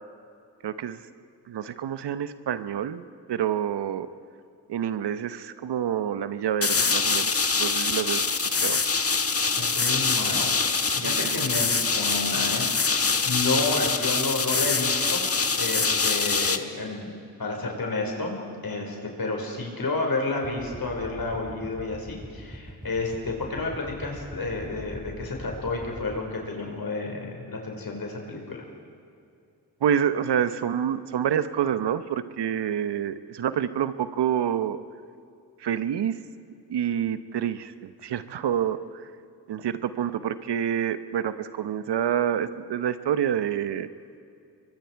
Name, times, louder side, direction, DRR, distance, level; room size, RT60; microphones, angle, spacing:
voice 1, 0.6-1.0 1.5-3.0 3.3-4.1 4.7-7.3 7.6-8.3 8.6-8.8 11.0-11.5 29.8-34.8 35.6-36.2 36.7-39.0 39.5-43.9, right 9 dB, 75° right, 12 dB, 1.0 m, -27 dB
sound 1, 6.6-16.6, left 4 dB, 35° left, 1.4 m, -24 dB
voice 2, 9.6-10.6 10.9-15.2 15.5-17.1 17.4-28.6, left 3 dB, 55° left, 0 dB, 5.1 m, -31 dB
sound 2, 20.4-26.2, equal, 10° right, 5.3 m, -42 dB
24.0 x 23.0 x 4.6 m, 2.5 s
supercardioid pair, 40°, 41 cm